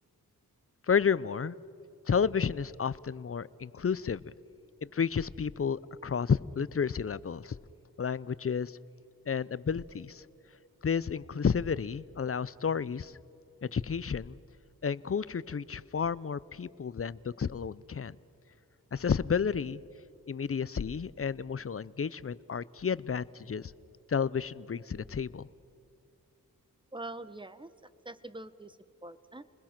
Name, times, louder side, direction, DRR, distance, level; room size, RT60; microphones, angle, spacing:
voice 1, 0.9-1.5 2.1-4.3 4.8-7.6 8.0-8.8 9.3-10.2 10.8-13.1 13.6-14.4 14.8-18.2 18.9-19.8 20.3-23.7 24.1-25.5, left 6 dB, 40° left, 19 dB, 0.6 m, -31 dB
voice 2, 26.9-27.7 28.0-29.4, right 2 dB, 15° right, 14 dB, 1.1 m, -44 dB
30.0 x 21.0 x 6.0 m, 2.8 s
cardioid pair, 60°, 34 cm